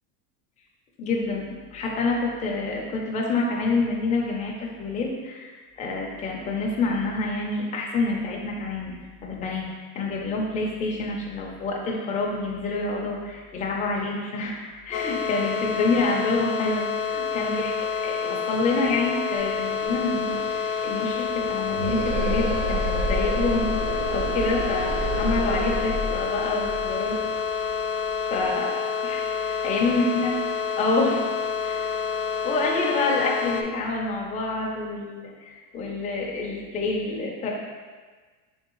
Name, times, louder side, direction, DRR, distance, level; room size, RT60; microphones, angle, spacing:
voice 1, 1.0-9.0 9.2-14.6 14.8-27.2 27.6-27.7 28.3-30.3 30.8-31.3 31.6-31.9 32.4-37.5, left 3 dB, 20° left, -2 dB, 0.5 m, -27 dB
sound 1, 14.9-33.6, left 6 dB, 85° left, 0.6 m, -28 dB
sound 2, 19.4-19.5 19.7-28.5, right 1 dB, 75° right, 0.6 m, -30 dB
3.6 x 3.5 x 3.0 m, 1.4 s
cardioid pair, 145°, 40 cm